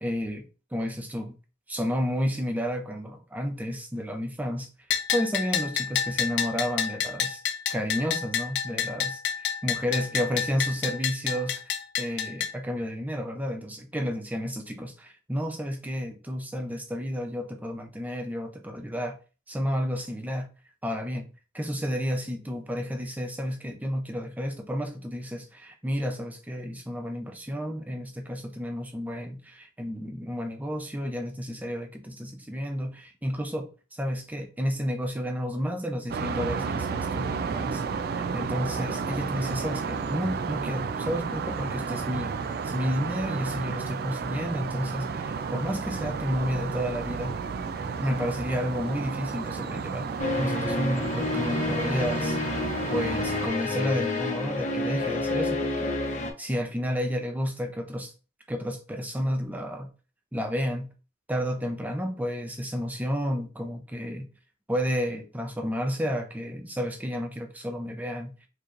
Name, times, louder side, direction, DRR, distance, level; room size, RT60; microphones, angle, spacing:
voice 1, 0.0-1.4 1.7-4.7 5.1-7.4 7.7-9.2 9.6-11.6 12.0-19.2 19.5-20.5 20.8-21.3 21.5-37.8 38.2-42.3 42.6-47.4 48.0-50.1 50.4-52.4 52.9-55.9 56.4-58.1 58.5-59.9 60.3-60.9 61.3-64.3 64.7-68.3, equal, 10° right, 0.6 m, -31 dB
Bell, 4.9-12.5, left 8 dB, 65° left, 0.5 m, -29 dB
sound 1, 36.1-53.5, right 5 dB, 55° right, 0.4 m, -32 dB
sound 2, 50.2-56.3, left 2 dB, 40° left, 0.8 m, -29 dB
4.6 x 3.0 x 2.6 m
head